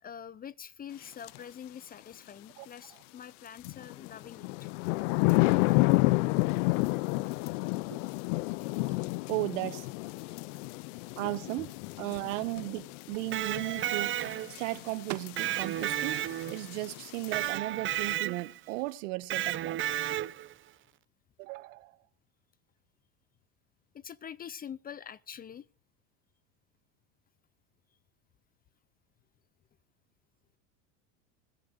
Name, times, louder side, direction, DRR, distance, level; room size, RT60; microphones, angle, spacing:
voice 1, 0.0-4.7 8.3-8.4 8.7-8.8 10.7-11.3 12.0-12.2 23.9-25.7, left 8 dB, 25° left, 0.5 m, -46 dB
sound 1, 1.2-1.4 3.6-17.5, left 22 dB, 65° left, 0.5 m, -31 dB
voice 2, 9.3-9.9 11.2-11.7 12.0-14.2 14.5-16.2 16.5-19.8 21.4-22.0, right 20 dB, 70° right, 1.2 m, -35 dB
Electric guitar, 13.1-14.7 15.4-16.8 17.3-18.6 19.3-20.5, right 13 dB, 30° right, 0.6 m, -32 dB
21.0 x 12.5 x 2.5 m
hypercardioid pair, 100°, 39 cm